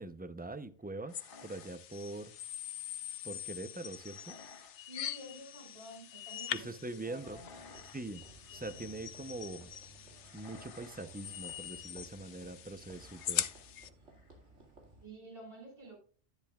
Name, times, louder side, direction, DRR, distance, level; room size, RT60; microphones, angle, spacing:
voice 1, 0.0-2.3 3.2-4.3 6.5-7.4 7.9-8.2 8.5-9.7 10.3-13.5, right 2 dB, 15° right, 11 dB, 0.3 m, -43 dB
sound 1, 0.9-2.5 3.8-4.8 5.1-5.6 7.1-8.1 8.3-8.9 10.1-11.8 12.9-13.7 14.1-14.5, left 4 dB, 50° left, 1.5 m, -58 dB
sound 2, 1.1-13.9, left 10 dB, 80° left, 1.0 m, -43 dB
voice 2, 4.9-7.5 15.0-16.0, right 1 dB, 50° right, -4 dB, 5.7 m, -50 dB
sound 3, 7.1-15.1, right 2 dB, 90° right, 2.5 m, -58 dB
10.5 x 10.0 x 2.3 m, 0.42 s
omnidirectional pair, 1.2 m